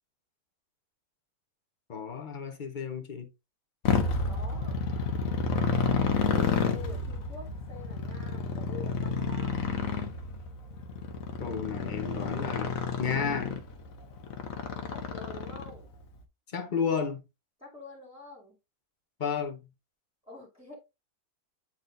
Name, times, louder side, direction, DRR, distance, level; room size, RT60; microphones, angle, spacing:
voice 1, 1.9-3.3 11.4-13.5 16.5-17.2 19.2-19.6, left 6 dB, 35° left, 0.9 m, -32 dB
Motorcycle, 3.8-15.9, left 5 dB, 65° left, 1.3 m, -30 dB
voice 2, 4.3-4.8 5.5-9.6 14.9-15.9 17.6-18.6 20.3-20.7, left 3 dB, 5° right, 2.3 m, -47 dB
8.9 x 4.1 x 2.6 m
omnidirectional pair, 1.6 m